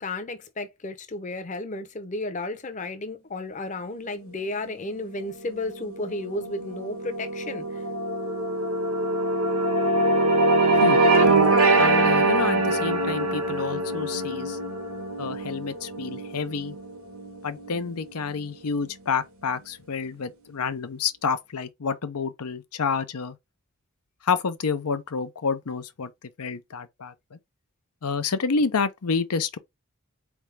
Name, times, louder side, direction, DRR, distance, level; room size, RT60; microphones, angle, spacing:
voice 1, 0.0-7.8, left 2 dB, 35° left, 0.7 m, -33 dB
sound 1, 5.5-18.0, right 2 dB, 70° right, 1.3 m, -23 dB
voice 2, 11.8-14.6 15.2-16.8 17.4-23.4 24.2-26.1 26.4-27.4 28.0-29.6, left 5 dB, 90° left, 0.6 m, -29 dB
4.2 x 3.5 x 3.3 m
head